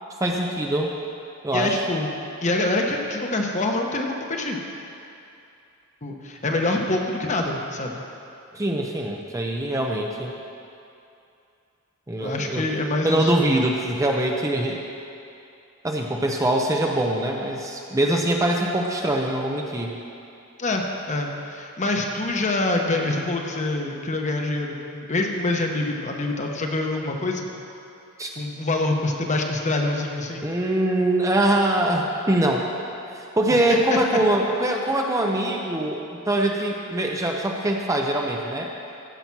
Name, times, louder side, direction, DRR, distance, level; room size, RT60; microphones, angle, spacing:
voice 1, 0.2-0.9 1.4-1.8 8.5-10.3 12.1-12.6 13.0-14.8 15.8-19.9 28.2-28.3 30.4-32.7 33.1-38.7, right 1 dB, 15° right, 1 dB, 0.6 m, -23 dB
voice 2, 1.5-2.1 2.4-4.6 6.0-8.0 12.2-13.3 18.1-18.2 20.6-27.5 28.4-30.5 33.9-34.0, left 2 dB, 35° left, 2 dB, 1.0 m, -25 dB
15.0 x 5.8 x 6.0 m, 2.7 s
head